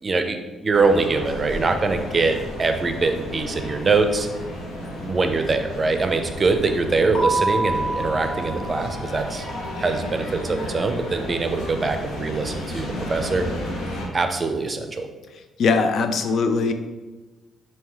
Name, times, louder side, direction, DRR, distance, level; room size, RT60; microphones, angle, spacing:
voice 1, 0.0-4.3 5.0-9.4 9.8-13.5 14.1-15.1, right 3 dB, 35° right, 6 dB, 0.4 m, -23 dB
sound 1, 0.7-14.1, equal, 90° left, 1.0 m, -33 dB
Keyboard (musical), 7.1-9.7, right 2 dB, 25° left, 1.1 m, -27 dB
voice 2, 15.6-16.7, left 4 dB, 65° left, 7 dB, 0.4 m, -20 dB
3.7 x 2.6 x 4.5 m, 1.2 s
cardioid pair, 90°, 0 cm